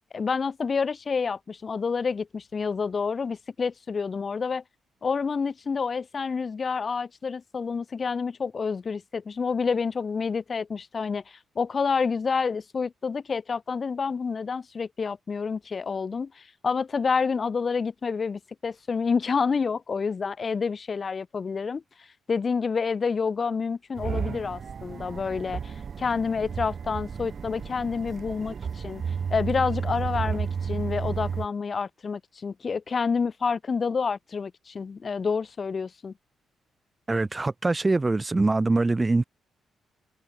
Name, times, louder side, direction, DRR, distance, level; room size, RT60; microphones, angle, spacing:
voice 1, 0.1-4.6 5.0-21.8 22.3-29.0 29.3-36.1, left 5 dB, 45° left, 3.2 m, -28 dB
sound 1, 24.0-31.5, right 6 dB, 50° right, 2.6 m, -32 dB
voice 2, 37.1-39.2, right 2 dB, 25° right, 1.0 m, -23 dB
open air
hypercardioid pair, 40°, 0 cm